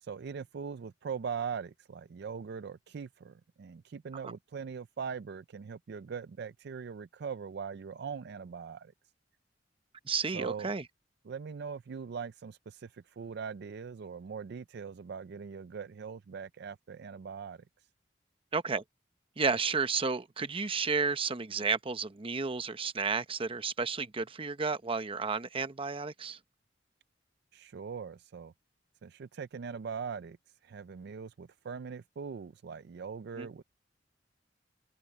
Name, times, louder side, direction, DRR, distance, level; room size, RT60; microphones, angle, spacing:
voice 1, 0.0-8.9 10.3-10.7 11.2-17.6 27.5-28.5 29.0-30.4 30.6-33.6, right 6 dB, 60° right, 0.4 m, -41 dB
voice 2, 10.1-10.8 18.5-18.8 19.4-26.4 33.4-33.5, right 4 dB, 30° right, 0.8 m, -32 dB
head